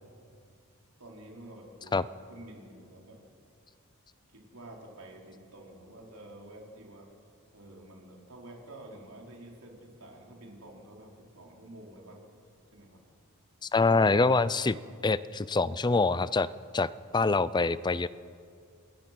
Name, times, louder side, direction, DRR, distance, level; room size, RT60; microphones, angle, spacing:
voice 1, 1.0-2.0 2.3-3.2 4.3-7.1 7.5-12.2 12.7-13.0, right 1 dB, 75° right, 0 dB, 4.7 m, -49 dB
voice 2, 13.6-14.8 15.0-16.5 16.7-18.1, left 3 dB, 20° left, 17 dB, 0.4 m, -25 dB
27.5 x 20.0 x 6.1 m, 2.3 s
head